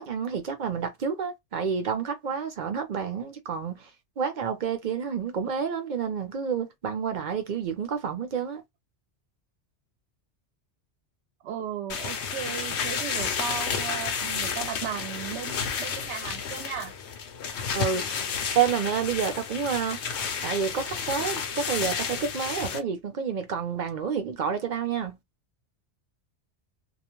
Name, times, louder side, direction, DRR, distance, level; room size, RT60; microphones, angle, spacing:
voice 1, 0.0-3.9 4.2-8.6 17.7-18.1 18.6-20.0 20.4-25.2, right 7 dB, 50° right, 0.7 m, -29 dB
voice 2, 11.4-16.9, right 9 dB, 75° right, 0.9 m, -36 dB
sound 1, 11.9-22.8, left 6 dB, 75° left, 0.9 m, -31 dB
2.4 x 2.1 x 3.0 m
omnidirectional pair, 1.2 m